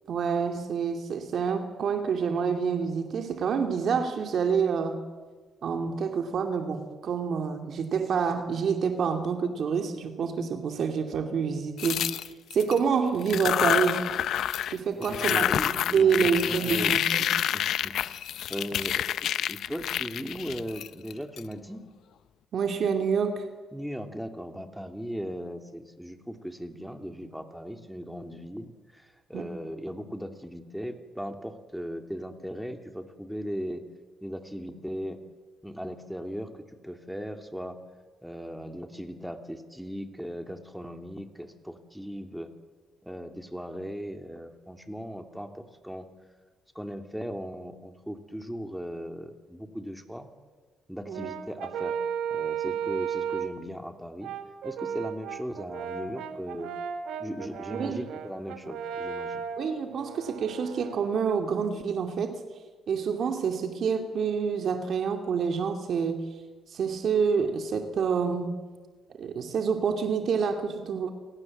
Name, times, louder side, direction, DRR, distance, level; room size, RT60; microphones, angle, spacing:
voice 1, 0.1-5.0 5.6-14.1 14.7-17.3 22.5-23.5 29.3-29.5 51.1-51.3 57.7-58.0 59.6-62.4 62.9-66.2 66.7-68.6 69.2-71.1, right 6 dB, 60° right, 5 dB, 2.5 m, -27 dB
sound 1, 11.8-12.8 13.2-14.8 15.0-21.4, left 10 dB, 75° left, 0.8 m, -28 dB
voice 2, 14.6-17.0 17.5-18.0 18.5-21.8 23.7-33.8 34.2-35.2 35.6-37.8 38.2-42.5 43.0-46.1 46.7-50.3 50.9-52.0 52.3-54.3 54.6-56.7 57.2-59.5, equal, ahead, 6 dB, 2.9 m, -38 dB
Brass instrument, 51.1-53.6 54.2-61.2, right 7 dB, 85° right, 1.8 m, -35 dB
28.5 x 18.5 x 7.7 m, 1.4 s
cardioid pair, 90°, 0 cm